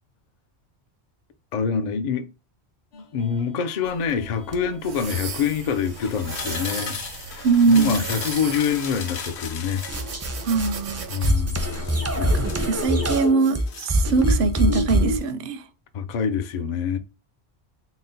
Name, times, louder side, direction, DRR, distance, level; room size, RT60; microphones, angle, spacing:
voice 1, 1.5-2.3 2.9-9.8 11.1-12.5 15.9-17.0, left 7 dB, 55° left, 0.5 m, -26 dB
sound 1, 2.9-4.9 5.7-10.1 11.6-13.2 13.6-14.7 15.0-15.3, left 6 dB, 80° left, 1.0 m, -38 dB
sound 2, 3.9-11.3, right 6 dB, 85° right, 1.1 m, -36 dB
voice 2, 7.4-8.1 10.4-11.1 12.2-12.3 12.6-15.6, right 4 dB, 65° right, 0.7 m, -21 dB
sound 3, 9.9-15.2, right 1 dB, 20° right, 0.4 m, -24 dB
4.0 x 2.1 x 3.9 m
omnidirectional pair, 1.1 m